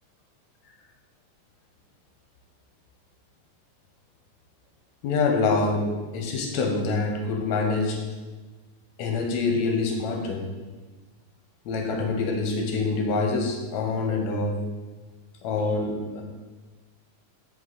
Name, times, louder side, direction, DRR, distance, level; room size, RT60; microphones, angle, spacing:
voice 1, 5.0-5.9 6.1-8.0 9.0-10.5 11.7-14.5 15.4-16.2, left 3 dB, 70° left, 1 dB, 2.3 m, -25 dB
7.7 x 5.6 x 4.1 m, 1.3 s
omnidirectional pair, 3.4 m